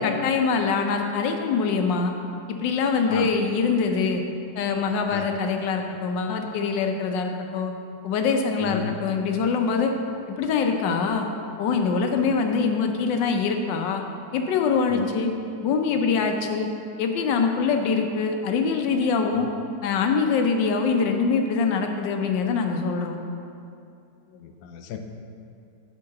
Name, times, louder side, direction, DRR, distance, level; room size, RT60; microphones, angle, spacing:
voice 1, 0.0-2.1 2.5-4.2 4.6-7.7 8.0-9.9 10.4-11.3 11.6-14.0 14.3-15.3 15.6-16.7 17.0-19.5 19.8-23.2, left 5 dB, 90° left, 4 dB, 1.4 m, -24 dB
voice 2, 8.6-8.9 14.9-15.1 19.3-19.5 24.4-25.0, left 7 dB, 70° left, 5 dB, 1.0 m, -33 dB
8.5 x 3.8 x 6.4 m, 2.5 s
omnidirectional pair, 1.9 m